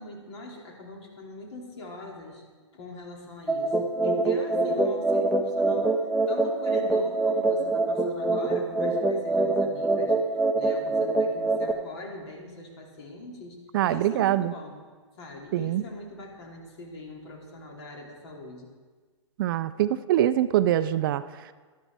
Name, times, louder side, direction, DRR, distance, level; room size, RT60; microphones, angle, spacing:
voice 1, 0.0-2.4 2.7-6.0 6.3-10.2 10.6-13.6 13.9-14.8 15.2-18.7, left 1 dB, 60° left, 0 dB, 2.8 m, -42 dB
sound 1, 3.5-11.7, right 2 dB, ahead, 0.7 m, -25 dB
voice 2, 13.7-14.5 15.5-15.8 19.4-21.5, right 12 dB, 45° right, 14 dB, 0.4 m, -24 dB
12.5 x 10.5 x 3.5 m, 1.4 s
hypercardioid pair, 125°, 16 cm